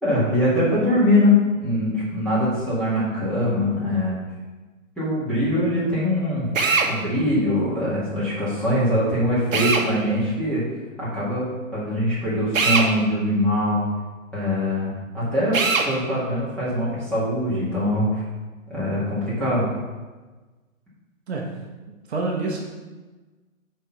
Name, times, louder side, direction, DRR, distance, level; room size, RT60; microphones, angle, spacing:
voice 1, 0.0-4.2 5.0-6.5 6.9-10.6 11.0-11.5 11.7-13.8 14.3-15.6 15.8-18.2 18.7-19.6, left 1 dB, 5° left, -11 dB, 2.1 m, -22 dB
Drill, 6.5-6.9 9.5-9.9 12.5-12.9 15.5-15.9, right 4 dB, 75° right, 1.3 m, -20 dB
voice 2, 21.3-21.7 22.1-22.6, right 3 dB, 50° right, -1 dB, 1.3 m, -27 dB
6.8 x 4.5 x 5.9 m, 1.3 s
hypercardioid pair, 155°, 40 cm